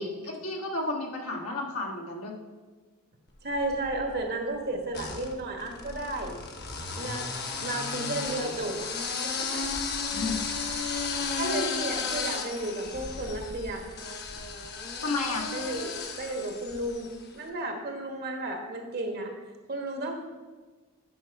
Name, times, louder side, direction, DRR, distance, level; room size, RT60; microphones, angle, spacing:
voice 1, 0.0-2.3 10.0-10.4 11.2-11.7 12.3-12.4 15.0-15.4, left 2 dB, 70° left, -1 dB, 1.5 m, -32 dB
voice 2, 3.4-6.4 6.9-7.3 7.6-8.8 9.2-9.6 10.1-10.2 11.4-13.9 15.5-15.9 16.2-19.3 19.7-20.2, right 2 dB, 45° right, 3 dB, 1.3 m, -33 dB
sound 1, 3.5-4.2 4.9-17.2, left 4 dB, 50° left, 1.0 m, -34 dB
9.5 x 5.8 x 4.7 m, 1.3 s
head